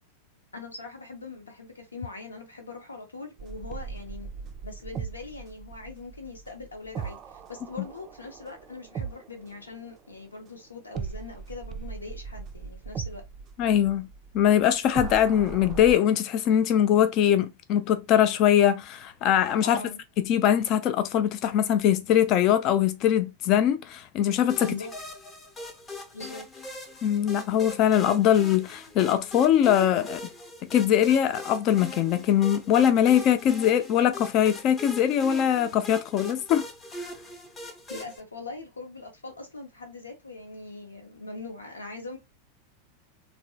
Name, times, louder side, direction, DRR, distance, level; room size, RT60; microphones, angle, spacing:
voice 1, 0.5-4.3 4.6-13.2 19.6-20.0 24.6-24.9 26.1-26.5 37.9-42.2, left 3 dB, 75° left, 0.9 m, -41 dB
sound 1, 3.4-10.5 10.9-16.0, right 6 dB, 30° right, 0.4 m, -39 dB
voice 2, 13.6-14.1 14.3-19.8 20.2-24.7 27.0-30.2 30.7-36.7, left 10 dB, 40° left, 0.4 m, -22 dB
sound 2, 24.5-38.2, left 1 dB, 20° left, 0.8 m, -41 dB
3.3 x 2.2 x 2.7 m
figure-of-eight pair, 90°, 0 cm